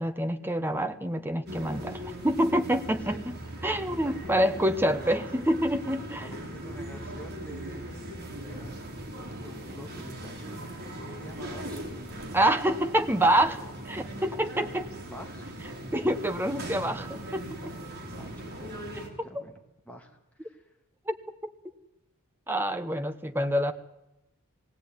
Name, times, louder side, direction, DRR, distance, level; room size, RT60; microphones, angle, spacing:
voice 1, 0.0-3.3 3.6-6.3 12.3-13.6 13.9-14.9 15.9-17.4 19.0-19.3 21.1-21.2 21.4-21.5 22.5-23.7, right 1 dB, 10° right, 8 dB, 1.2 m, -27 dB
sound 1, 1.5-19.1, right 1 dB, 45° right, 4.1 m, -39 dB
voice 2, 3.9-5.2 6.2-9.1 9.3-11.8 15.0-15.5 18.1-18.8 19.2-20.7, equal, 5° left, 2 dB, 2.7 m, -47 dB
19.0 x 17.5 x 9.6 m, 0.90 s
head